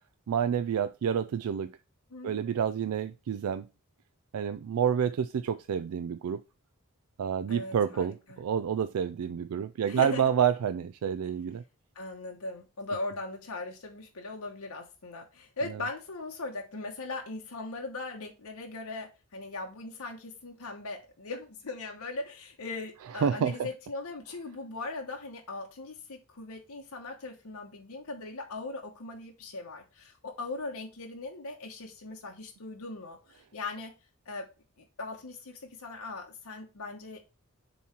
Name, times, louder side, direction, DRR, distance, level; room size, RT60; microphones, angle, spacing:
voice 1, 0.3-1.7 2.2-3.7 4.3-6.4 7.2-11.6 15.7-15.8 23.2-23.7, right 8 dB, 85° right, 0.3 m, -29 dB
voice 2, 2.1-2.5 7.5-8.4 9.9-10.3 11.9-33.9 34.3-34.5 35.0-37.2, left 3 dB, 85° left, 1.1 m, -39 dB
7.1 x 3.1 x 4.3 m
head